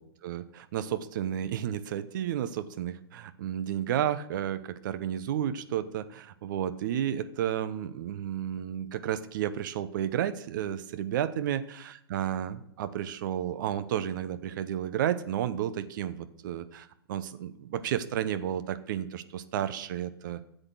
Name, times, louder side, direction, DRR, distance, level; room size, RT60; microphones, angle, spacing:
voice 1, 0.0-20.4, right 10 dB, 50° right, 12 dB, 1.0 m, -32 dB
13.5 x 7.8 x 6.3 m, 0.74 s
figure-of-eight pair, 115°, 13 cm